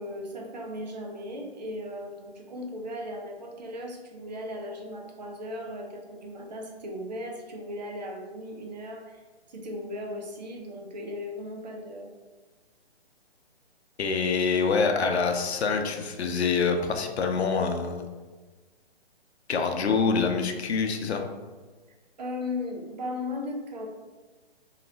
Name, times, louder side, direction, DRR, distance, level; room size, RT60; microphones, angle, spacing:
voice 1, 0.0-12.1 22.2-23.9, left 1 dB, 40° right, 1 dB, 0.5 m, -37 dB
voice 2, 14.0-18.0 19.5-21.2, left 5 dB, 85° left, 4 dB, 0.6 m, -25 dB
2.9 x 2.8 x 2.6 m, 1.3 s
hypercardioid pair, 155°, 32 cm